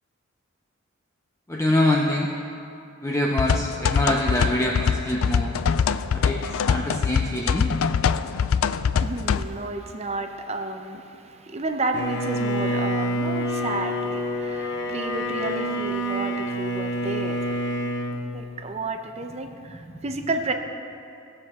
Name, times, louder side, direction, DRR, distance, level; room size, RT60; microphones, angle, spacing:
voice 1, 1.5-2.3 3.0-5.5 6.1-7.7, left 1 dB, 15° left, -1 dB, 0.6 m, -25 dB
sound 1, 3.4-9.4, left 6 dB, 90° left, 0.4 m, -23 dB
voice 2, 9.0-20.5, right 2 dB, 30° right, 5 dB, 0.7 m, -31 dB
Bowed string instrument, 11.9-18.2, equal, 55° left, 0.8 m, -27 dB
18.0 x 7.6 x 3.6 m, 2.5 s
head